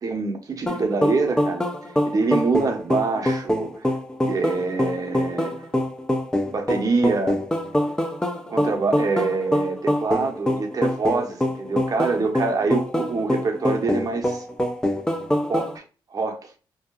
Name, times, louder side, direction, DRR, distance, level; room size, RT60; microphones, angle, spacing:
voice 1, 0.0-1.6 2.0-3.9 4.2-5.5 6.5-7.4 8.5-14.4 15.5-15.8 16.1-16.5, right 4 dB, 40° right, 0.7 m, -25 dB
sound 1, 0.7-15.8, left 1 dB, 10° left, 0.3 m, -24 dB
2.7 x 2.2 x 2.3 m
cardioid pair, 75°, 9 cm